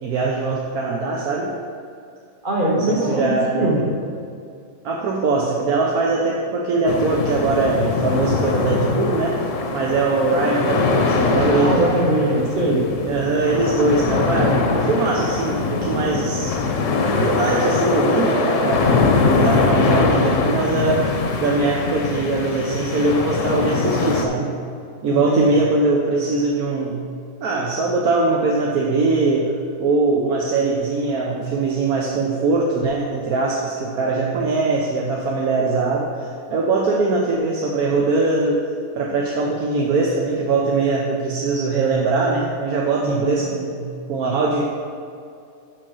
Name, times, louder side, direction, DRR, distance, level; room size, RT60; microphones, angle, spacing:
voice 1, 0.0-1.6 2.9-3.7 4.8-9.4 9.7-12.0 13.0-16.6 17.2-21.1 21.4-24.5 25.0-27.0 27.4-29.5 29.8-38.7 39.0-44.6, right 3 dB, 70° right, -2 dB, 1.2 m, -21 dB
voice 2, 2.4-3.9 11.5-12.9 25.1-25.5 43.0-43.4, right 1 dB, 35° right, -2 dB, 1.5 m, -21 dB
sound 1, 6.9-24.2, left 4 dB, 60° left, 1.1 m, -22 dB
6.5 x 6.0 x 6.2 m, 2.4 s
omnidirectional pair, 1.7 m